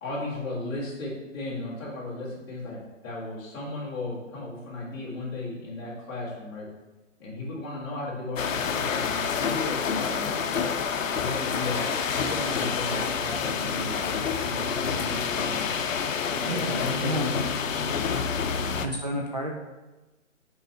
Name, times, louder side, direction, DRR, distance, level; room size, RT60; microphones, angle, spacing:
voice 1, 0.0-6.7 7.2-10.8 11.2-14.0 14.4-15.9 16.4-18.1 18.5-18.9, left 2 dB, 20° left, -9 dB, 1.9 m, -35 dB
sound 1, 8.4-18.9, left 6 dB, 85° left, 0.6 m, -28 dB
sound 2, 11.5-14.4 15.6-16.6, left 2 dB, 40° left, 1.3 m, -40 dB
voice 2, 16.5-17.3 18.8-19.5, right 1 dB, 35° right, -1 dB, 0.4 m, -31 dB
5.6 x 4.7 x 4.3 m, 1.1 s
hypercardioid pair, 165°, 38 cm